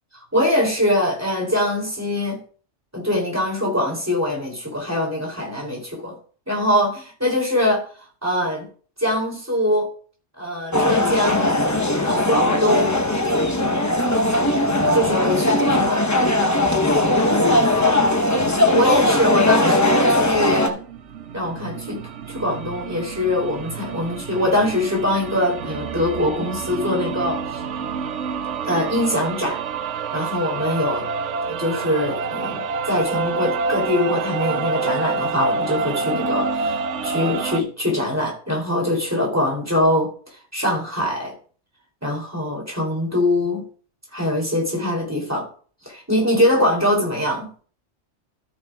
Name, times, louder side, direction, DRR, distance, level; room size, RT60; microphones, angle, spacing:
voice 1, 0.3-2.4 2.9-6.1 6.5-7.8 8.2-8.7 9.0-9.9 10.4-11.6 12.0-13.0 14.9-16.1 17.5-18.1 18.4-20.8 21.3-22.0 22.3-27.6 28.6-29.6 30.1-31.1 31.5-40.1 40.5-41.3 42.0-43.6 44.1-45.5 45.8-47.5, left 1 dB, 15° right, 3.1 m, -23 dB
sound 1, 10.7-20.7, left 1 dB, 15° left, 0.9 m, -19 dB
sound 2, 20.7-37.6, right 5 dB, 85° right, 1.0 m, -28 dB
13.0 x 8.7 x 2.4 m
omnidirectional pair, 1.2 m